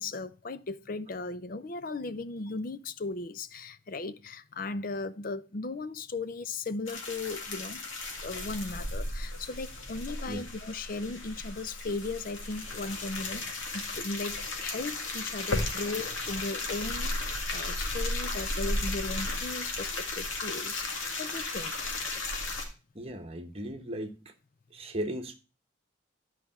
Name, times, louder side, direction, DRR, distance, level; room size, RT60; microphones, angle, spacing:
voice 1, 0.0-7.8 8.2-21.9, left 3 dB, 45° left, 0.5 m, -37 dB
sound 1, 6.9-22.6, left 2 dB, 90° left, 2.0 m, -35 dB
voice 2, 22.9-24.3 24.7-25.3, right 1 dB, 30° right, 1.0 m, -36 dB
10.0 x 4.9 x 4.2 m
head